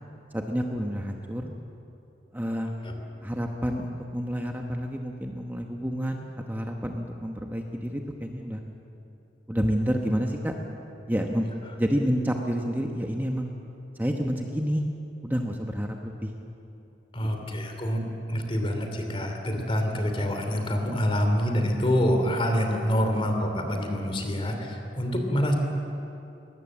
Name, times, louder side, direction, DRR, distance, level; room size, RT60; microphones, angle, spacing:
voice 1, 0.3-1.5 2.3-2.7 3.2-8.6 9.5-10.5 11.1-11.5 11.8-13.5 13.9-14.8 15.2-16.3 17.5-17.6, equal, 10° right, 2 dB, 1.1 m, -29 dB
voice 2, 17.1-25.5, equal, 30° left, 4 dB, 2.9 m, -26 dB
21.5 x 19.0 x 7.5 m, 2.9 s
head